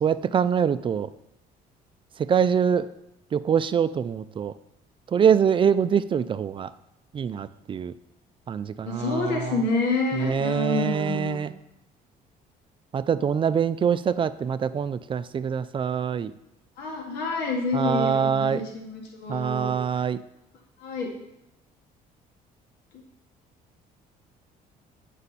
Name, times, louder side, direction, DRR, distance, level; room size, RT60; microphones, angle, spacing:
voice 1, 0.0-1.1 2.3-2.9 3.3-4.5 5.1-6.7 7.1-7.9 8.5-9.4 10.2-11.5 12.9-16.3 17.7-18.6 19.3-20.2, right 7 dB, 30° right, 14 dB, 0.3 m, -24 dB
voice 2, 8.9-11.4 16.8-19.7 20.8-21.1, left 3 dB, 85° left, -1 dB, 1.9 m, -28 dB
8.3 x 5.5 x 4.1 m, 0.86 s
cardioid pair, 110°, 17 cm